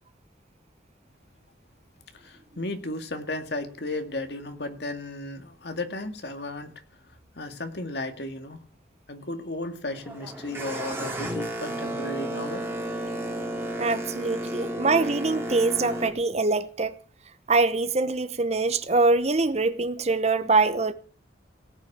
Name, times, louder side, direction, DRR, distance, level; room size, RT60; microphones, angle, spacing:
voice 1, 2.1-6.7 7.1-8.6 9.1-12.6, left 2 dB, 65° left, 2.2 m, -34 dB
Boat Water vehicle, 9.9-16.1, right 1 dB, 15° right, 2.8 m, -32 dB
voice 2, 13.8-16.9 17.5-20.9, right 3 dB, 35° right, 0.9 m, -24 dB
18.0 x 6.5 x 8.7 m
head